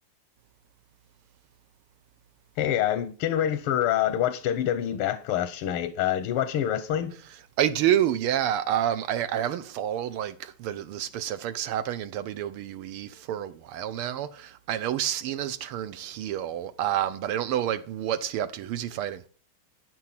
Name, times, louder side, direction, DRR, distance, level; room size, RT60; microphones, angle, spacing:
voice 1, 2.6-7.2, left 11 dB, 85° left, 1.7 m, -26 dB
voice 2, 7.6-19.2, right 11 dB, 85° right, 1.6 m, -29 dB
12.0 x 9.1 x 5.8 m
omnidirectional pair, 2.4 m